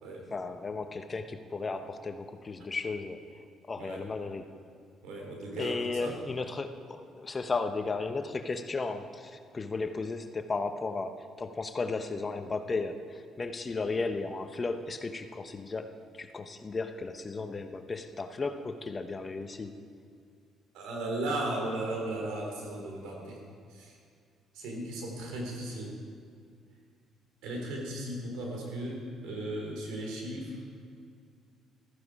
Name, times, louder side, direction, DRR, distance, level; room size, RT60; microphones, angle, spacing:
voice 1, 0.3-3.2 3.7-4.5 5.6-19.8, left 3 dB, 30° left, 8 dB, 1.0 m, -35 dB
voice 2, 5.0-6.1 20.7-23.4 23.7-23.9 24.5-26.0 27.4-30.6, right 1 dB, 80° right, 0 dB, 3.6 m, -36 dB
14.5 x 13.5 x 4.9 m, 2.3 s
supercardioid pair, 75°, 0 cm